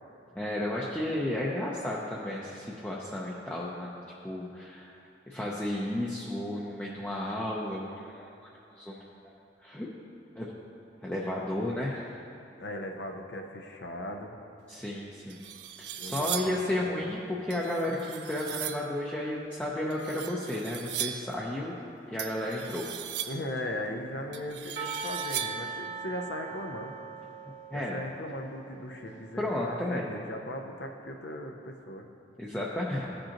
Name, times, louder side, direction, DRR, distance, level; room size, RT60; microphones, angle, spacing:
voice 1, 0.4-3.9 4.2-4.9 5.3-8.3 8.8-9.0 9.6-9.9 10.4-10.5 11.0-12.1 14.7-15.5 15.8-21.7 22.1-22.9 27.7-28.0 29.4-30.0 32.4-33.2, left 1 dB, 10° left, -5 dB, 0.6 m, -33 dB
voice 2, 12.6-14.4 16.0-17.0 23.3-27.0 27.7-32.1, left 1 dB, 65° left, 3 dB, 0.6 m, -38 dB
sound 1, 14.8-14.9 15.3-16.7 17.5-18.9 19.9-21.4 22.2-23.6 24.3-25.7, right 10 dB, 65° right, 0.4 m, -38 dB
Percussion, 24.8-29.6, right 5 dB, 85° right, 1.7 m, -41 dB
14.5 x 5.2 x 2.9 m, 2.7 s
head